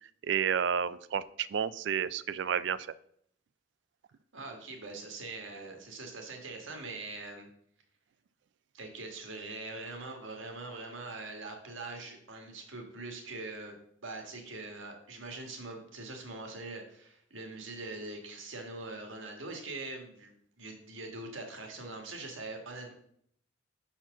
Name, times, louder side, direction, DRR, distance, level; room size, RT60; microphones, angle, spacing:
voice 1, 0.2-2.9, right 7 dB, 65° right, 17 dB, 0.3 m, -31 dB
voice 2, 4.3-7.5 8.7-13.8 14.0-22.9, right 2 dB, 85° right, 3 dB, 1.5 m, -43 dB
5.7 x 4.4 x 5.9 m, 0.67 s
head